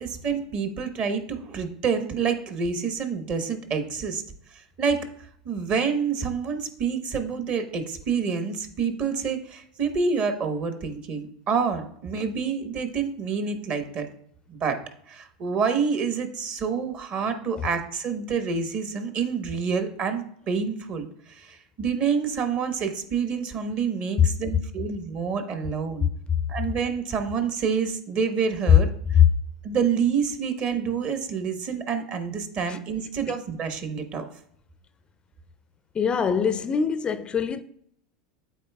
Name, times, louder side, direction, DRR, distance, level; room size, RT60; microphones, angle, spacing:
voice 1, 0.0-4.2 4.5-5.1 5.4-14.1 14.5-14.8 15.1-26.1 26.5-29.2 29.6-34.2, right 6 dB, 40° right, 1.1 m, -28 dB
voice 2, 35.9-37.6, left 8 dB, 25° left, 0.4 m, -22 dB
12.5 x 4.1 x 2.3 m
hypercardioid pair, 85°, 4 cm